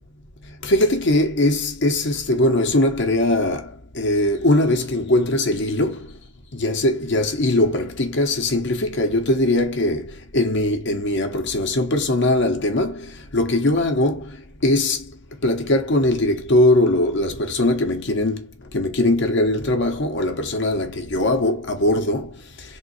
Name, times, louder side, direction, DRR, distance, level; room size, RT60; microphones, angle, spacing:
voice 1, 0.4-6.2 6.5-22.8, left 1 dB, 60° left, 1.0 m, -21 dB
3.7 x 2.7 x 4.2 m
head